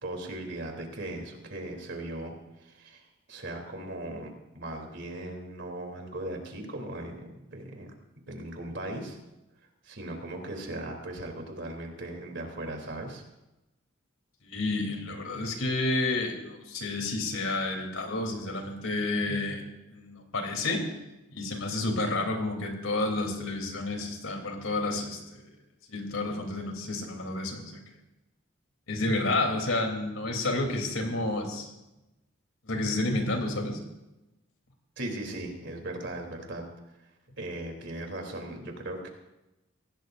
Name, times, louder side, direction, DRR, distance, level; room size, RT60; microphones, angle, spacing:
voice 1, 0.0-2.3 2.6-7.9 8.3-9.2 9.8-13.2 35.0-36.7 37.4-39.1, right 1 dB, 60° right, 2 dB, 3.3 m, -38 dB
voice 2, 14.4-19.6 19.9-20.9 21.3-25.4 25.9-27.8 28.9-31.7 32.6-33.8, left 2 dB, 90° left, 3 dB, 3.4 m, -30 dB
24.5 x 17.0 x 2.6 m, 0.97 s
head